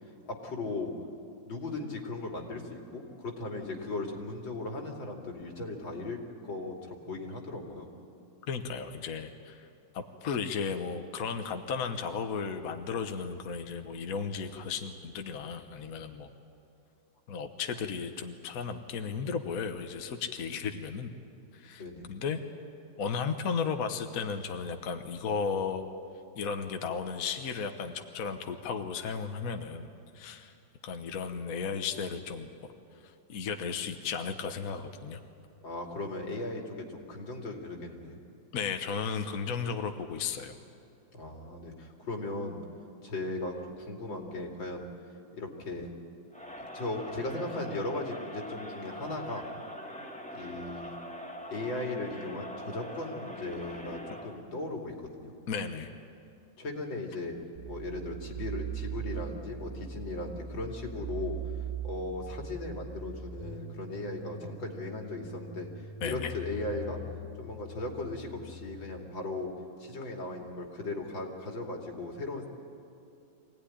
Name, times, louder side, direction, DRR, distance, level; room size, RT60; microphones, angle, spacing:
voice 1, 0.3-0.9 1.5-7.9 21.8-22.1 35.6-38.2 41.1-42.6 43.0-44.9 45.3-45.9 46.6-49.5 50.3-51.0 51.5-55.3 56.6-57.4 57.6-61.4 61.8-65.7 66.0-67.0 67.4-69.5 69.8-72.5, left 2 dB, 85° left, 1 dB, 3.3 m, -37 dB
voice 2, 8.4-9.7 9.9-16.3 17.3-21.1 21.5-21.8 22.1-22.4 23.0-25.9 26.4-30.5 30.8-32.5 33.0-35.2 38.5-40.5 55.5-55.9 66.0-66.3, left 6 dB, 55° left, 6 dB, 1.4 m, -34 dB
Crowd, 46.3-54.4, equal, 5° left, 1.5 m, -43 dB
sound 1, 57.5-69.0, right 5 dB, 45° right, 2.1 m, -41 dB
24.5 x 17.5 x 10.0 m, 2.6 s
omnidirectional pair, 2.0 m